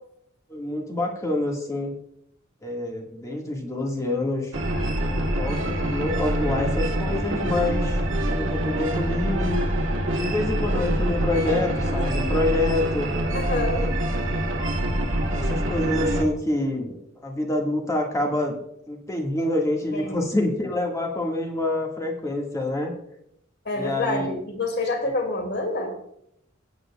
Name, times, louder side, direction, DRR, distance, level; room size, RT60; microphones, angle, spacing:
voice 1, 0.5-1.9 2.6-4.5 5.1-8.0 8.3-9.6 10.1-13.1 13.7-13.9 15.3-18.6 18.9-22.9 23.7-24.3, left 2 dB, 15° left, 0 dB, 1.9 m, -27 dB
sound 1, 4.5-16.2, right 1 dB, 75° right, 2.0 m, -25 dB
voice 2, 13.3-13.9 19.9-20.3 23.6-25.9, left 2 dB, 55° left, 3 dB, 2.5 m, -27 dB
19.5 x 9.4 x 2.4 m, 0.74 s
head